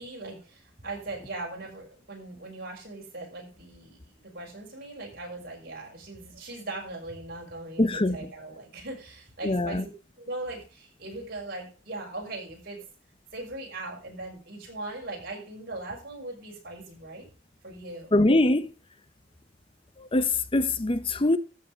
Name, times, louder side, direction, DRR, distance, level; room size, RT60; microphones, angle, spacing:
voice 1, 0.0-9.9 10.2-12.9 13.3-17.2 17.6-18.1, right 2 dB, 55° right, 6.4 m, -39 dB
voice 2, 7.8-8.2 9.4-9.8 18.1-18.7 20.0-21.4, left 2 dB, 30° left, 0.7 m, -23 dB
13.5 x 7.6 x 5.1 m
head